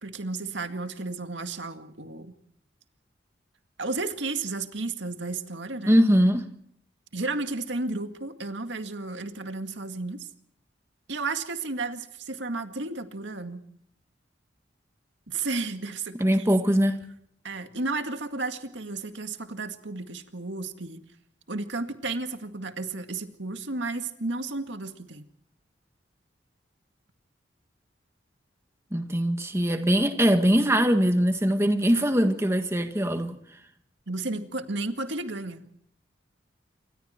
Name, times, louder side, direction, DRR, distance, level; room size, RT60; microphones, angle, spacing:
voice 1, 0.0-2.4 3.8-6.0 7.1-10.3 11.1-13.6 15.3-16.5 17.4-21.0 21.5-25.3 34.1-35.6, right 3 dB, 75° right, 2.1 m, -33 dB
voice 2, 5.8-6.5 16.2-17.1 28.9-33.4, equal, 15° right, 1.8 m, -22 dB
28.0 x 24.5 x 4.5 m
head